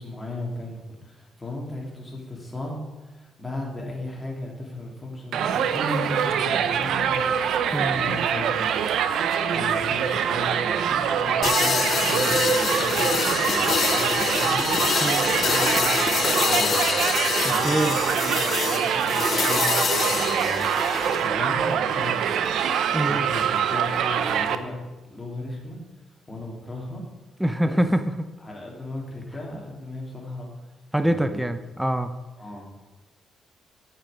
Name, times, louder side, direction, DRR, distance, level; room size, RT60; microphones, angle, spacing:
voice 1, 0.0-7.4 7.8-8.9 9.4-16.9 17.5-22.5 23.1-24.8 25.1-25.8 26.3-27.0 27.6-27.8 28.4-30.5 30.9-31.4 32.4-32.7, left 1 dB, 15° left, -2 dB, 2.9 m, -36 dB
Crowd, 5.3-24.6, right 8 dB, 75° right, 0.6 m, -24 dB
sound 1, 6.4-18.1, right 2 dB, 40° right, 2.7 m, -47 dB
sound 2, 11.4-21.3, left 6 dB, 50° left, 0.4 m, -26 dB
voice 2, 17.6-18.0 22.9-23.3 27.4-28.0 30.9-32.1, equal, 5° right, 9 dB, 0.6 m, -24 dB
8.7 x 8.0 x 5.1 m, 1.2 s
cardioid pair, 90°, 0 cm